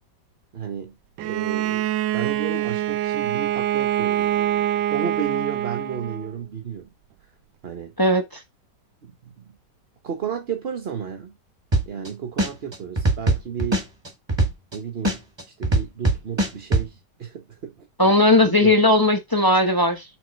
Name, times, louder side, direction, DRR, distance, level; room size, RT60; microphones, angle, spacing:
voice 1, 0.5-6.9 7.6-7.9 9.0-9.6 10.0-11.4 11.9-13.9 14.7-15.3 15.6-18.1 18.4-18.8, right 7 dB, 45° right, 0.9 m, -33 dB
Bowed string instrument, 1.2-6.3, right 12 dB, 80° right, 1.2 m, -25 dB
sound 1, 11.7-12.1 12.4-14.7 15.0-16.8, right 2 dB, 15° right, 1.5 m, -20 dB
voice 2, 18.0-20.0, left 1 dB, 20° left, 0.7 m, -17 dB
6.5 x 3.8 x 5.1 m
omnidirectional pair, 1.9 m